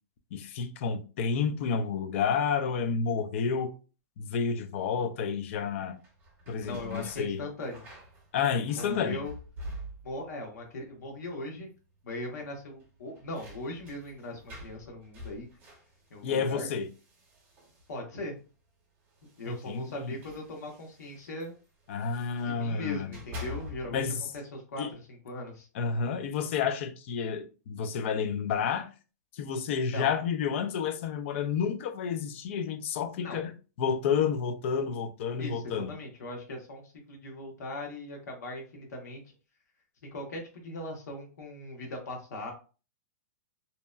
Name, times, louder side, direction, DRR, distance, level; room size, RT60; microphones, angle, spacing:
voice 1, 0.3-3.7 4.2-6.0 6.5-7.4 8.3-9.2 16.2-16.9 19.5-20.1 21.9-23.1 23.9-24.2 24.8-24.9 25.7-28.9 29.3-33.5 33.8-35.9, left 6 dB, 45° left, 0.4 m, -30 dB
sound 1, 5.9-10.3 10.6-11.3 11.6-11.7 12.8-18.2 19.1-22.6 22.9-24.1, left 1 dB, 25° right, 0.8 m, -47 dB
voice 2, 6.6-7.8 8.8-9.3 10.0-11.7 12.0-15.5 16.1-16.7 17.9-18.4 19.4-21.5 22.4-25.7 29.8-30.1 33.2-33.4 35.4-39.3 40.0-42.5, left 1 dB, 80° left, 0.9 m, -39 dB
2.7 x 2.1 x 2.2 m
hypercardioid pair, 160°, 9 cm